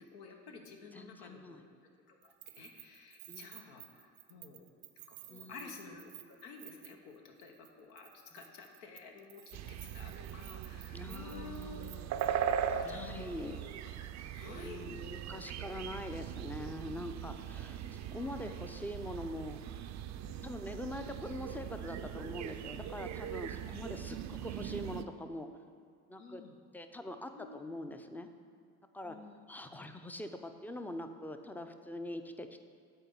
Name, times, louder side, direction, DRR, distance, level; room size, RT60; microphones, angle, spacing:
voice 1, 0.0-1.6 1.8-4.6 5.0-11.9 12.5-12.6 12.9-13.3 14.0-15.0 15.6-15.7 18.0-18.6 20.2-20.6 26.2-26.5 27.3-27.6 29.0-29.3, left 4 dB, 70° left, 2 dB, 1.3 m, -52 dB
voice 2, 0.9-1.6 3.3-3.5 5.3-5.7 8.3-8.4 10.9-12.1 12.8-13.7 14.4-19.6 20.4-25.5 26.1-26.4 26.7-28.3 28.9-29.2 29.5-32.6, left 1 dB, 5° left, 7 dB, 0.6 m, -43 dB
Keys jangling, 2.2-7.2 7.4-7.7 8.0-12.5, right 15 dB, 90° right, 0.6 m, -54 dB
sound 1, 9.5-25.0, right 9 dB, 45° right, 0.5 m, -40 dB
9.0 x 4.2 x 7.1 m, 2.3 s
hypercardioid pair, 75°, 41 cm